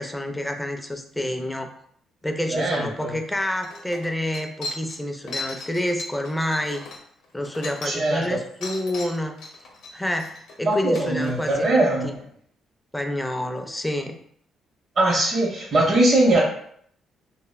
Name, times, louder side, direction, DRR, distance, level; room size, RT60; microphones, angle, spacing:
voice 1, 0.0-1.7 2.2-6.9 7.3-9.4 9.9-11.7 12.9-14.2, left 1 dB, 5° left, 4 dB, 0.4 m, -28 dB
voice 2, 2.5-3.1 7.8-8.4 10.6-12.2 15.0-16.4, right 2 dB, 50° right, -2 dB, 0.7 m, -21 dB
sound 1, 3.2-3.3 3.6-8.3 8.6-11.5, left 2 dB, 80° left, 0.6 m, -37 dB
3.2 x 2.0 x 2.2 m, 0.65 s
cardioid pair, 90°, 0 cm